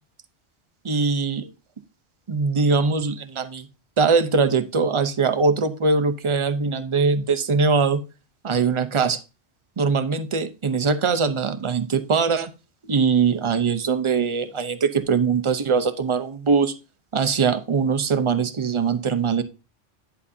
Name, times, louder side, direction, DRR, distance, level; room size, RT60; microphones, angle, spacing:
voice 1, 0.8-1.5 2.3-3.7 4.0-8.0 8.4-9.2 9.8-12.5 12.8-16.7 17.1-19.4, right 5 dB, 35° right, 9 dB, 0.6 m, -22 dB
11.0 x 6.8 x 2.7 m, 0.30 s
omnidirectional pair, 1.2 m